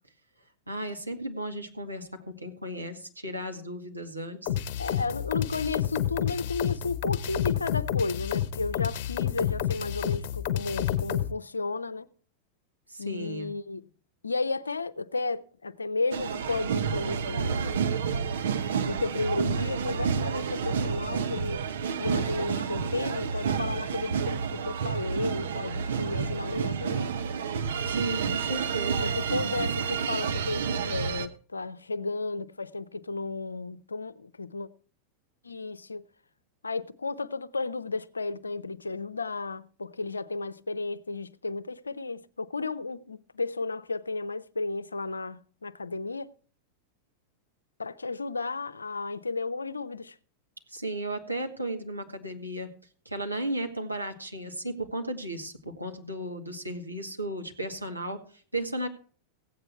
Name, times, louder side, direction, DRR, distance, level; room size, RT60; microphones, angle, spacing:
voice 1, 0.7-4.5 4.9-5.0 12.9-13.5 27.8-29.1 50.7-52.7 53.1-58.2 58.5-58.9, right 1 dB, 85° right, 2.0 m, -35 dB
sound 1, 4.5-11.3, left 11 dB, 50° left, 1.3 m, -29 dB
voice 2, 4.8-12.1 13.0-13.9 14.2-17.8 18.8-21.7 22.0-27.2 29.0-34.7 35.4-36.0 36.6-46.3 47.8-50.2, left 3 dB, 75° left, 0.7 m, -33 dB
sound 2, 16.1-31.3, right 6 dB, 65° right, 1.1 m, -30 dB
16.0 x 8.9 x 4.5 m
figure-of-eight pair, 90°, 0 cm